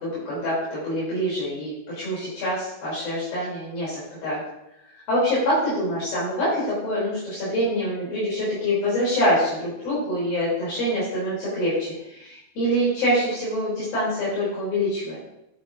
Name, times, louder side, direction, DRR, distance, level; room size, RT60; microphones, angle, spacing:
voice 1, 0.0-4.4 5.1-15.2, equal, 60° left, -9 dB, 4.9 m, -25 dB
10.0 x 8.8 x 2.6 m, 0.84 s
omnidirectional pair, 4.7 m